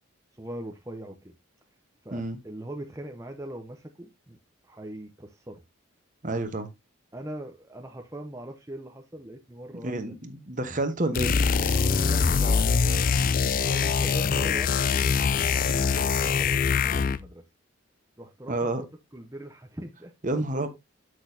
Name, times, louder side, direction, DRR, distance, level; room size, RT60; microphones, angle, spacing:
voice 1, 0.3-1.3 2.0-4.4 4.6-5.6 7.1-10.2 10.8-10.9 11.7-17.5 18.2-18.9 19.1-20.1 20.5-20.7, right 1 dB, 15° right, 0.7 m, -41 dB
voice 2, 6.2-6.7 9.8-11.4 18.5-18.8 20.2-20.7, right 2 dB, 40° right, 1.1 m, -29 dB
sound 1, 11.1-17.3, left 5 dB, 40° left, 0.4 m, -23 dB
8.5 x 6.2 x 2.7 m
head